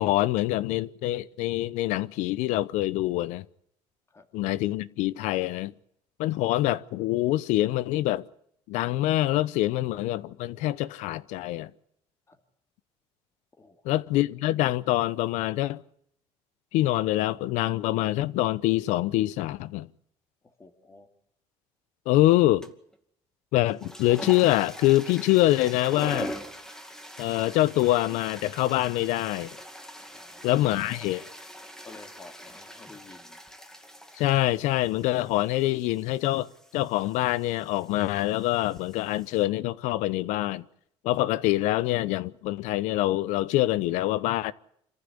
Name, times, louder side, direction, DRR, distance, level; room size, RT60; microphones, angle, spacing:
voice 1, 0.0-3.4 4.3-5.7 6.2-8.3 8.7-11.7 13.8-15.8 16.7-19.9 22.1-22.7 23.5-26.4 27.2-29.5 30.4-31.2 34.2-40.6 41.0-44.5, left 16 dB, 85° left, 0.8 m, -25 dB
voice 2, 20.4-21.1 30.1-31.3 31.8-33.4, left 3 dB, 25° left, 2.8 m, -51 dB
sound 1, 22.6-23.0 23.6-39.4, equal, 5° left, 2.4 m, -43 dB
26.5 x 15.0 x 8.5 m
cardioid pair, 115°, 12 cm